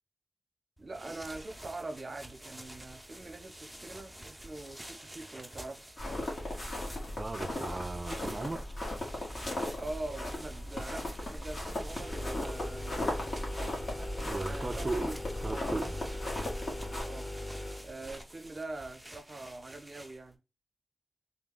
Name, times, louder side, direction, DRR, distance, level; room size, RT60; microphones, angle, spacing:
sound 1, 0.8-20.4, right 1 dB, 5° right, 0.7 m, -49 dB
voice 1, 0.8-5.8 9.7-13.0 13.6-15.9 17.0-17.4 17.8-20.4, right 2 dB, 55° right, 0.7 m, -44 dB
sound 2, 6.0-17.0, left 1 dB, 65° left, 1.7 m, -37 dB
voice 2, 7.2-8.7 14.3-15.1 15.4-15.9, right 3 dB, 40° right, 0.3 m, -36 dB
sound 3, 11.9-17.9, left 1 dB, 20° left, 0.9 m, -40 dB
3.6 x 2.3 x 3.7 m
wide cardioid pair, 100°, 0 cm